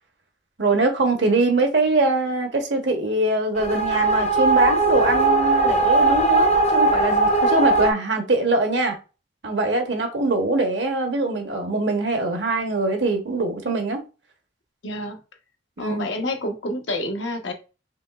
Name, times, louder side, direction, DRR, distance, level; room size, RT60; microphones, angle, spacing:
voice 1, 0.6-9.0 9.4-14.0 15.8-16.1, right 2 dB, 65° right, 1.0 m, -22 dB
sound 1, 3.6-7.9, right 2 dB, 35° left, 0.6 m, -19 dB
voice 2, 14.8-15.2 15.8-17.5, left 1 dB, 75° left, 0.9 m, -28 dB
5.0 x 3.2 x 2.3 m
head